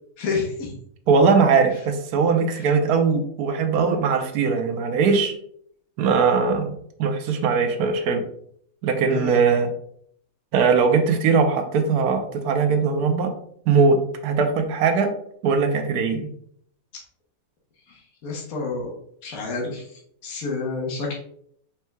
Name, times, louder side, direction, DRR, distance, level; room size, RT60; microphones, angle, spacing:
voice 1, 0.2-0.7 2.5-2.7 9.1-9.4 17.9-18.9 19.2-19.8 20.2-21.1, left 4 dB, 70° left, 0 dB, 1.4 m, -29 dB
voice 2, 1.1-5.3 6.0-6.7 7.0-8.2 8.8-9.7 10.5-13.3 13.7-15.1 15.4-16.3, right 5 dB, 85° right, 6 dB, 1.2 m, -20 dB
4.5 x 4.4 x 2.3 m, 0.66 s
omnidirectional pair, 1.6 m